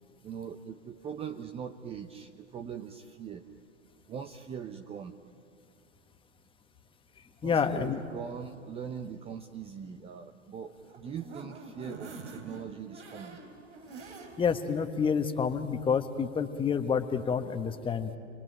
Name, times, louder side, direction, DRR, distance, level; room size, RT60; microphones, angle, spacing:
voice 1, 0.2-3.4 4.1-5.1 7.4-13.4, right 7 dB, 15° right, 7 dB, 0.8 m, -41 dB
voice 2, 7.4-8.0 14.4-18.1, left 6 dB, 15° left, 7 dB, 1.4 m, -28 dB
sound 1, 10.7-14.6 15.0-15.1 15.5-15.6, right 3 dB, 70° right, 4.5 m, -46 dB
29.5 x 21.5 x 9.0 m, 2.4 s
figure-of-eight pair, 110°, 36 cm